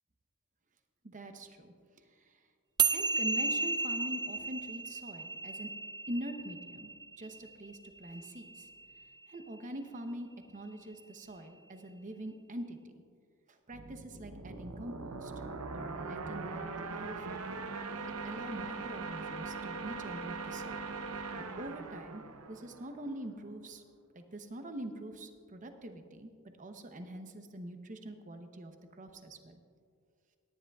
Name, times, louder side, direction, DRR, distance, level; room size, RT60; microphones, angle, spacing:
voice 1, 1.0-1.7 2.3-2.4 2.9-5.7 6.1-6.9 7.2-8.7 9.3-13.0 13.5-15.3 15.7-17.6 18.1-20.9 21.4-23.8 24.1-26.3 26.6-29.6, right 1 dB, 35° right, 6 dB, 0.8 m, -44 dB
sound 1, 2.8-9.4, right 4 dB, 20° right, 0.3 m, -34 dB
sound 2, 13.7-23.3, right 4 dB, 80° right, 0.7 m, -41 dB
18.5 x 10.0 x 2.4 m, 2.2 s
head